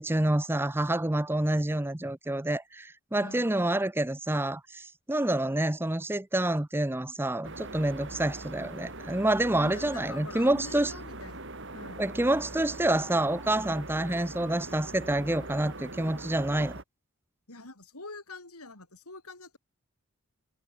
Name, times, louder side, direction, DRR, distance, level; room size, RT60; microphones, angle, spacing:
voice 1, 0.0-10.9 12.0-16.7, right 1 dB, 10° right, 0.6 m, -28 dB
voice 2, 3.2-3.6 9.6-11.4 11.7-12.0 17.5-19.6, left 3 dB, 85° left, 6.5 m, -45 dB
sound 1, 7.4-16.8, right 2 dB, 55° right, 4.3 m, -42 dB
head